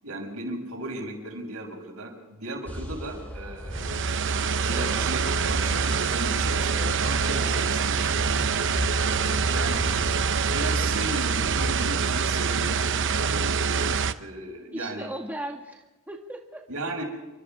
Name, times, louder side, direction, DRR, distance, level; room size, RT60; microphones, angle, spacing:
voice 1, 0.0-3.8 4.5-8.2 9.0-9.2 9.5-9.8 10.3-15.1 16.7-17.0, right 2 dB, 80° right, 1 dB, 6.7 m, -36 dB
sound 1, 2.7-12.0, equal, 10° left, 7.1 m, -36 dB
sound 2, 3.7-14.1, right 5 dB, 60° right, 0.8 m, -25 dB
voice 2, 14.7-16.6, right 1 dB, 10° right, 0 dB, 2.0 m, -38 dB
29.5 x 25.0 x 3.7 m, 1.1 s
head